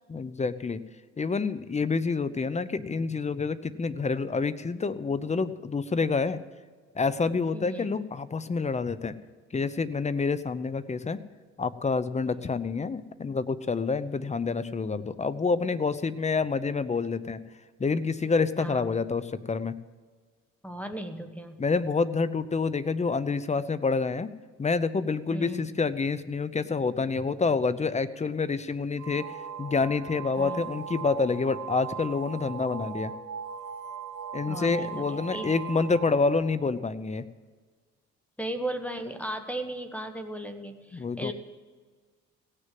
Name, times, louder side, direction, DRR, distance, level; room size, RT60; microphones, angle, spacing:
voice 1, 0.1-0.8 1.2-6.4 7.0-9.1 9.5-11.2 11.6-17.4 17.8-19.7 21.6-24.3 24.6-29.3 29.6-33.1 34.3-37.2 40.9-41.3, left 4 dB, 25° left, 15 dB, 0.7 m, -28 dB
voice 2, 7.5-8.0 12.2-12.4 18.6-19.0 20.6-21.6 25.3-25.6 30.4-30.6 34.5-35.5 38.4-41.3, right 1 dB, 5° left, 7 dB, 1.2 m, -36 dB
sound 1, 29.0-36.5, right 7 dB, 75° right, 1.5 m, -39 dB
17.0 x 6.6 x 7.6 m, 1.5 s
cardioid pair, 90°, 30 cm